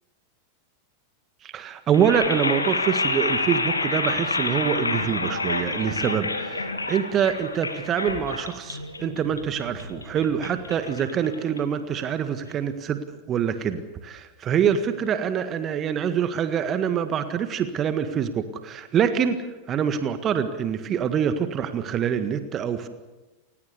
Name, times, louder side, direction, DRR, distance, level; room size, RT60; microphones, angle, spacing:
voice 1, 1.4-13.0 13.3-22.9, right 8 dB, 30° right, 10 dB, 1.7 m, -25 dB
sound 1, 1.9-12.0, left 3 dB, 80° left, 2.6 m, -29 dB
29.5 x 16.5 x 8.3 m, 1.2 s
figure-of-eight pair, 90°, 0 cm